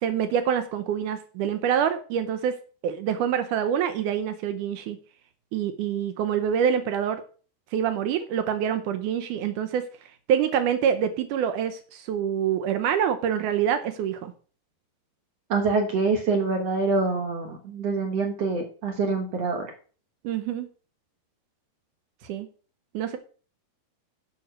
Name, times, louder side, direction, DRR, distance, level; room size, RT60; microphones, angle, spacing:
voice 1, 0.0-2.6 2.8-5.0 5.5-7.2 7.7-9.8 10.3-14.3 20.2-20.7 22.3-22.5 22.9-23.2, right 8 dB, 85° right, 10 dB, 1.8 m, -26 dB
voice 2, 15.5-19.7, right 4 dB, 60° right, 3 dB, 1.8 m, -25 dB
9.6 x 5.9 x 6.2 m, 0.40 s
omnidirectional pair, 4.6 m